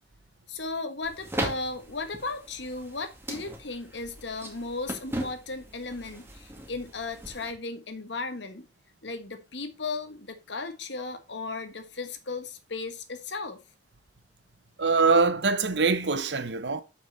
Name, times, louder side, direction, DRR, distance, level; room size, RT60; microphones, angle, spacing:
voice 1, 0.5-8.7 9.0-13.6, left 3 dB, 85° left, 1.5 m, -36 dB
sound 1, 1.0-7.5, right 1 dB, 15° right, 2.1 m, -38 dB
voice 2, 14.8-16.8, right 4 dB, 80° right, 1.0 m, -23 dB
7.5 x 5.9 x 4.1 m
head